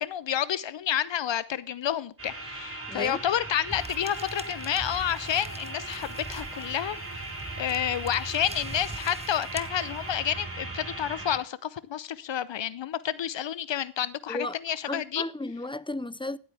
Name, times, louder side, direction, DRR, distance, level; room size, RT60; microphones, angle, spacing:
voice 1, 0.0-7.2 7.6-15.2, left 10 dB, 85° left, 0.8 m, -30 dB
sound 1, 2.2-11.4, right 2 dB, 30° right, 5.9 m, -38 dB
voice 2, 2.9-3.2 14.3-14.6 14.9-16.4, left 2 dB, 10° left, 0.6 m, -34 dB
sound 2, 3.7-10.4, right 2 dB, 15° right, 1.1 m, -44 dB
15.5 x 8.6 x 3.5 m
cardioid pair, 50°, 43 cm